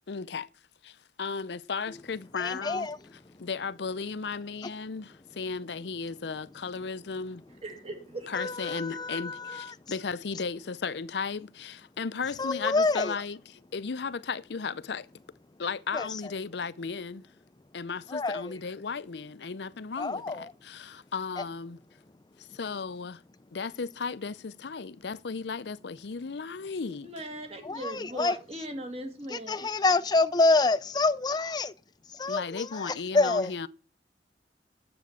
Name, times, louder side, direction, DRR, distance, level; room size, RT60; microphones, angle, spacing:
voice 1, 0.1-0.5 0.8-2.9 3.4-7.4 8.3-13.4 13.7-15.1 15.6-17.3 17.7-21.8 22.4-23.2 23.5-27.1 32.3-33.7, left 5 dB, 70° left, 0.6 m, -35 dB
voice 2, 2.4-3.5 4.6-4.7 8.3-9.9 12.4-13.2 15.9-16.3 18.1-18.6 20.0-20.5 21.4-21.5 22.3-22.6 27.6-28.6 29.3-31.7 32.0-33.5, left 3 dB, 25° left, 0.5 m, -28 dB
voice 3, 7.6-8.3 27.0-29.7, right 1 dB, 35° right, 2.0 m, -39 dB
9.5 x 7.9 x 7.3 m
head